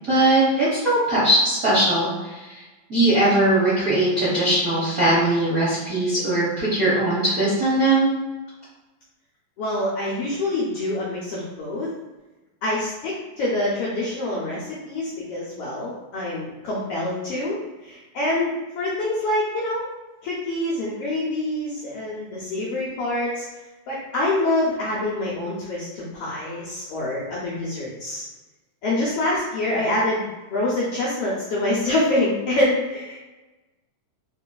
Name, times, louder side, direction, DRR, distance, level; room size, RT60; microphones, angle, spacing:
voice 1, 0.1-2.6 2.9-8.1, right 1 dB, 70° right, -10 dB, 0.8 m, -20 dB
voice 2, 9.6-11.9 12.6-17.6 17.8-19.9 20.2-23.4 23.9-28.3 28.8-33.2, left 1 dB, 80° left, -6 dB, 1.3 m, -26 dB
4.4 x 3.1 x 2.2 m, 1.1 s
omnidirectional pair, 3.3 m